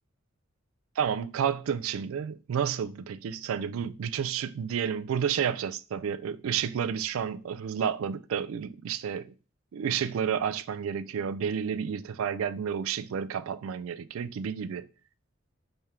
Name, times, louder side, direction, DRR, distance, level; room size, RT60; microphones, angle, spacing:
voice 1, 1.0-9.3 9.7-14.9, right 7 dB, 85° right, 0.3 m, -31 dB
4.3 x 3.3 x 3.6 m
head